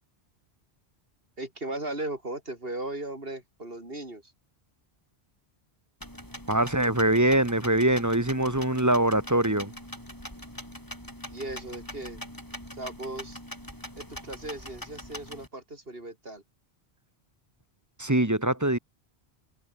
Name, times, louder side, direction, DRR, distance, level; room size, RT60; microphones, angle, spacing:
voice 1, 1.4-4.3 11.3-12.2 12.8-13.4 14.0-16.4, right 2 dB, 65° right, 5.7 m, -37 dB
sound 1, 6.0-15.5, equal, 20° left, 7.2 m, -43 dB
voice 2, 6.5-9.7 18.0-18.8, right 1 dB, 15° right, 1.4 m, -23 dB
omnidirectional pair, 1.1 m